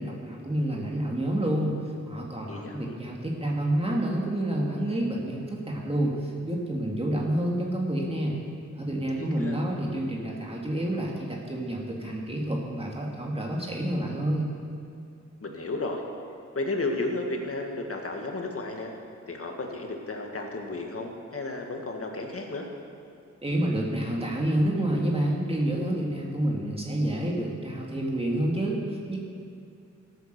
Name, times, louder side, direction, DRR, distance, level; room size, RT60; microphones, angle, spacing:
voice 1, 0.0-8.4 8.8-14.5 23.4-29.2, right 1 dB, 20° right, -2 dB, 2.0 m, -28 dB
voice 2, 2.5-2.9 9.2-9.6 15.4-16.0 16.6-18.9 19.3-22.7, left 2 dB, 50° left, 2 dB, 1.9 m, -33 dB
14.5 x 8.3 x 6.7 m, 2.5 s
cardioid pair, 75°, 30 cm